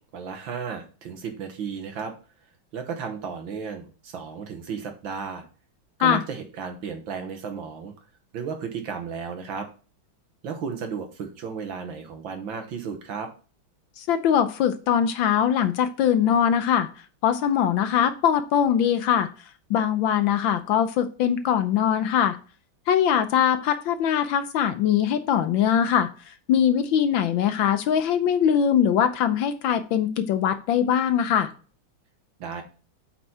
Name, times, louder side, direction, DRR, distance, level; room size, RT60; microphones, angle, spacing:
voice 1, 0.1-2.1 2.7-5.4 6.0-7.9 8.3-9.7 10.4-13.3 32.4-32.6, right 6 dB, 65° right, 6 dB, 1.9 m, -34 dB
voice 2, 14.0-16.9 17.2-19.3 19.7-22.4 22.9-31.5, left 9 dB, 70° left, 10 dB, 1.3 m, -22 dB
8.3 x 4.5 x 4.2 m, 0.36 s
omnidirectional pair, 2.4 m